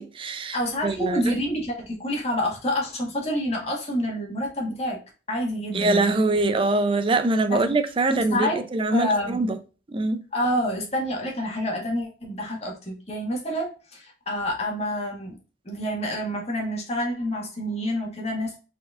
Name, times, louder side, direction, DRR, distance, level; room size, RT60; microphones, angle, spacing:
voice 1, 0.0-0.6 0.8-1.4 5.7-9.6 9.9-10.2, right 2 dB, 30° right, 0.5 m, -23 dB
voice 2, 0.5-5.0 5.3-6.4 7.5-7.6 8.1-8.6 8.9-9.5 10.3-15.4 15.6-18.6, equal, 35° left, 1.7 m, -28 dB
4.4 x 4.4 x 2.4 m
head